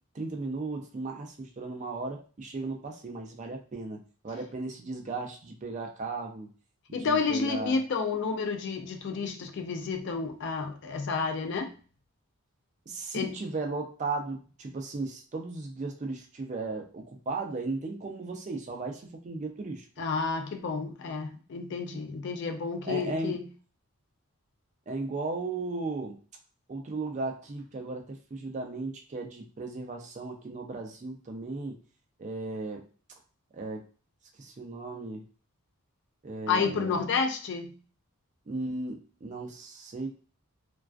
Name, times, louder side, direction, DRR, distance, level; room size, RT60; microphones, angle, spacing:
voice 1, 0.1-6.5 6.9-7.8 12.9-19.9 22.8-23.4 24.9-26.2 26.7-31.8 32.2-32.9 33.5-33.8 34.4-35.2 36.2-37.0 38.5-40.1, right 3 dB, 35° right, 3 dB, 0.4 m, -36 dB
voice 2, 6.9-11.7 13.1-13.3 20.0-23.5 36.5-37.8, left 5 dB, 55° left, 5 dB, 0.4 m, -30 dB
2.3 x 2.2 x 2.4 m, 0.39 s
head